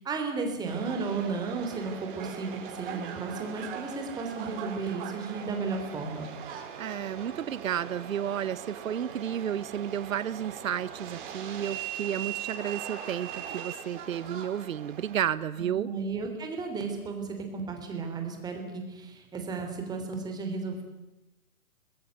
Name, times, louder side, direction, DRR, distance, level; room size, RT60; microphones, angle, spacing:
voice 1, 0.0-6.3 15.7-20.8, right 4 dB, 10° right, 4 dB, 3.1 m, -34 dB
Subway metro underground, 0.7-15.3, right 8 dB, 35° right, 4.2 m, -40 dB
voice 2, 6.8-15.9, right 9 dB, 60° right, 17 dB, 1.1 m, -32 dB
26.0 x 21.0 x 9.3 m, 0.99 s
hypercardioid pair, 155°, 46 cm